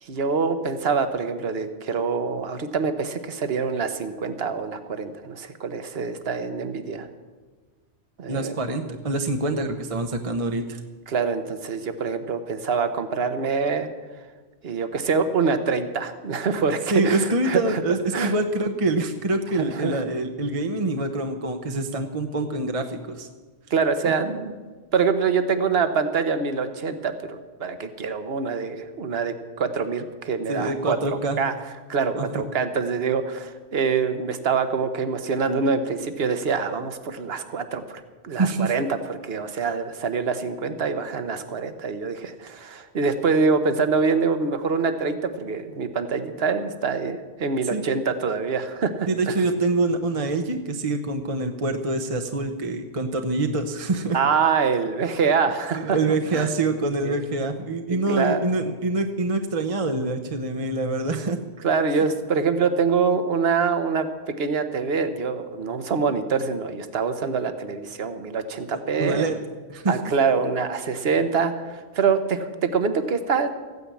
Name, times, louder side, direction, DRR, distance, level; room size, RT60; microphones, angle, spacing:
voice 1, 0.0-7.1 8.2-8.6 11.1-13.9 14.6-17.8 18.1-18.3 19.6-20.0 23.7-24.5 24.9-31.0 31.4-31.5 31.9-49.3 54.1-56.0 56.3-56.5 57.0-57.2 58.1-58.5 61.6-64.1 64.4-69.3 69.9-73.5, right 5 dB, 60° right, 9 dB, 1.3 m, -25 dB
voice 2, 8.3-10.8 16.9-23.3 24.0-24.1 30.5-31.4 32.1-32.4 38.4-38.7 47.7-47.8 49.1-54.2 55.7-61.4 68.7-69.4 69.7-70.0, right 2 dB, 30° right, 6 dB, 0.9 m, -25 dB
15.0 x 9.4 x 8.4 m, 1.4 s
omnidirectional pair, 1.2 m